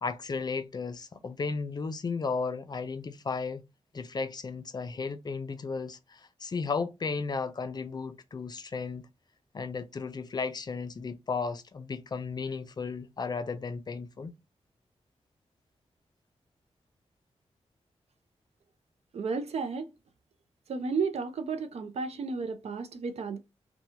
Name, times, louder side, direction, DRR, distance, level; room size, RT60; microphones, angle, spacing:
voice 1, 0.0-3.6 3.9-9.1 9.5-14.4, left 4 dB, 35° left, 0.3 m, -34 dB
voice 2, 19.1-19.9 20.7-23.4, right 4 dB, 65° right, 0.5 m, -32 dB
2.7 x 2.2 x 2.7 m
wide cardioid pair, 120°, 12 cm